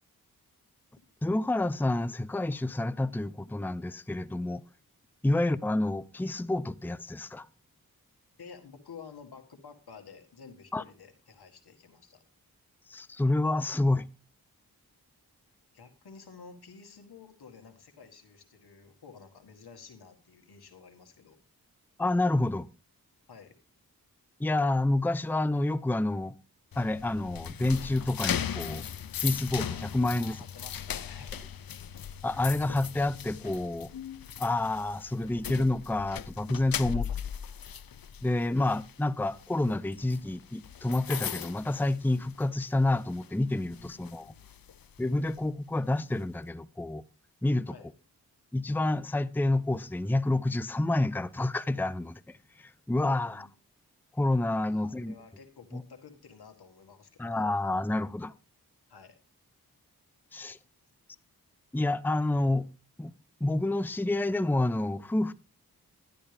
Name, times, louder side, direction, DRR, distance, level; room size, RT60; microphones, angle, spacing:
voice 1, 1.2-4.6 5.2-7.5 10.7-10.8 12.9-14.1 22.0-22.7 24.4-26.3 26.8-28.8 29.2-30.4 32.2-33.9 34.4-37.1 38.2-44.3 45.0-47.0 47.4-47.8 48.5-53.5 54.1-55.1 55.7-55.8 57.2-58.3 60.3-60.6 61.7-62.7 63.0-63.1 63.4-65.3, left 2 dB, 5° left, 0.6 m, -28 dB
voice 2, 8.4-12.2 15.7-21.4 23.3-23.6 30.1-31.7 36.8-37.2 43.6-44.7 47.7-47.9 53.1-53.5 54.7-57.4 58.9-59.2, left 5 dB, 85° left, 1.9 m, -51 dB
sound 1, 26.7-42.6 43.0-43.3 43.7-45.4, left 9 dB, 65° left, 0.7 m, -38 dB
11.5 x 11.5 x 3.4 m
cardioid pair, 45°, 38 cm